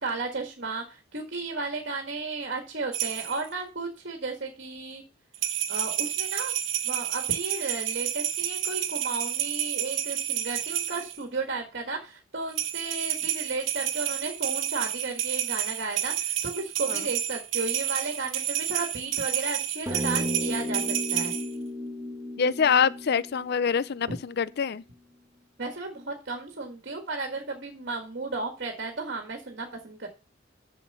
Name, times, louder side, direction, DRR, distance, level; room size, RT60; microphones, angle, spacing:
voice 1, 0.0-5.0 5.7-6.5 6.8-21.3 25.6-30.1, right 3 dB, 55° right, 1.7 m, -34 dB
sound 1, 2.9-3.5 5.3-11.2 12.5-21.5, right 11 dB, 75° right, 1.2 m, -30 dB
sound 2, 19.9-24.5, left 1 dB, 15° right, 1.2 m, -34 dB
voice 2, 22.4-24.8, left 6 dB, 55° left, 0.5 m, -25 dB
7.2 x 6.6 x 6.8 m
head